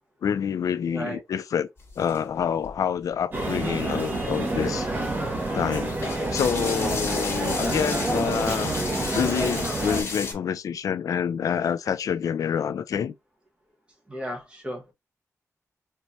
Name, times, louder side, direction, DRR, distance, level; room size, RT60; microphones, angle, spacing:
voice 1, 0.2-1.7 2.0-4.9 5.5-6.0 6.3-8.7 9.0-13.1, left 8 dB, 80° left, 0.3 m, -27 dB
voice 2, 0.9-1.2 14.1-14.9, equal, 20° right, 1.3 m, -34 dB
sound 1, 1.8-3.1 3.7-3.8 4.0-10.3, left 3 dB, 45° left, 1.5 m, -34 dB
sound 2, 3.3-10.0, right 2 dB, 35° right, 1.4 m, -28 dB
4.5 x 2.9 x 2.6 m
wide cardioid pair, 150°, 6 cm